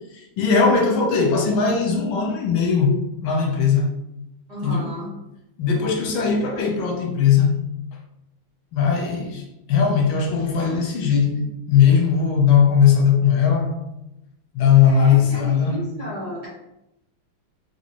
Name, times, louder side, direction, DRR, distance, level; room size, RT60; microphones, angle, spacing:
voice 1, 0.1-3.9 4.6-4.9 5.6-7.6 8.7-9.4 9.7-13.8 14.5-15.8, left 6 dB, 85° left, 0 dB, 1.7 m, -19 dB
voice 2, 4.5-5.1 14.8-16.5, equal, 20° right, -9 dB, 1.3 m, -32 dB
4.2 x 3.1 x 2.8 m, 0.87 s
omnidirectional pair, 2.2 m